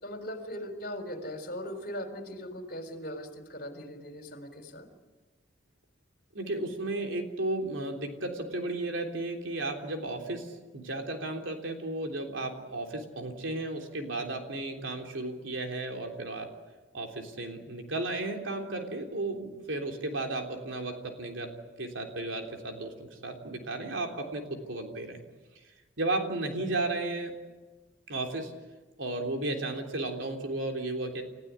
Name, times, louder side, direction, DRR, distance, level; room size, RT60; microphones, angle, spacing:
voice 1, 0.0-4.9, equal, 50° left, 6 dB, 3.8 m, -39 dB
voice 2, 6.3-16.5 16.9-21.5 21.8-22.9 23.2-25.2 26.0-27.3 28.1-28.5 29.0-31.2, right 2 dB, 75° right, 3 dB, 3.4 m, -34 dB
29.5 x 15.5 x 9.6 m, 1.3 s
head